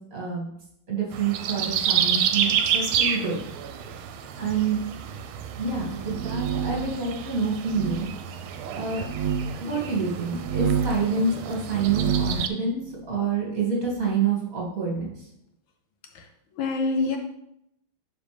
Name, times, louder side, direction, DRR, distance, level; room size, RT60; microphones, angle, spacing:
voice 1, 0.1-0.5 0.9-3.4 4.4-4.8 5.6-8.1 8.7-9.1 9.6-12.8 13.1-15.3, right 4 dB, 40° right, -4 dB, 2.8 m, -27 dB
sound 1, 1.1-12.5, right 8 dB, 85° right, 1.5 m, -29 dB
sound 2, 5.9-6.9 7.6-8.0 9.0-9.4 10.3-11.0 11.7-12.4, right 6 dB, 60° right, 0.8 m, -27 dB
voice 2, 16.0-17.2, left 3 dB, 70° left, 4 dB, 1.5 m, -27 dB
11.5 x 4.1 x 3.4 m, 0.76 s
omnidirectional pair, 2.3 m